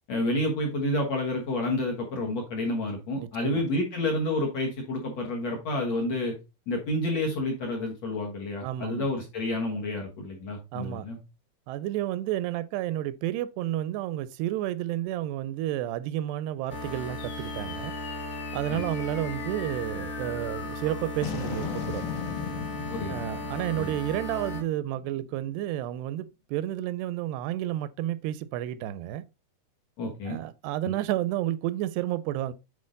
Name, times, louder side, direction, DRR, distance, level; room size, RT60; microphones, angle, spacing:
voice 1, 0.1-6.4 6.7-11.2 18.7-18.8 22.9-23.2 23.8-24.0 30.0-30.4, left 1 dB, 60° left, 1.8 m, -29 dB
voice 2, 3.2-3.6 8.6-9.1 10.7-11.1 11.7-17.9 18.5-22.0 23.1-29.2 30.3-32.5, right 13 dB, 85° right, 2.6 m, -31 dB
sound 1, 16.7-24.6, left 2 dB, 35° left, 1.4 m, -36 dB
sound 2, 17.2-25.8, left 7 dB, 85° left, 3.5 m, -40 dB
8.5 x 4.6 x 3.8 m
omnidirectional pair, 4.7 m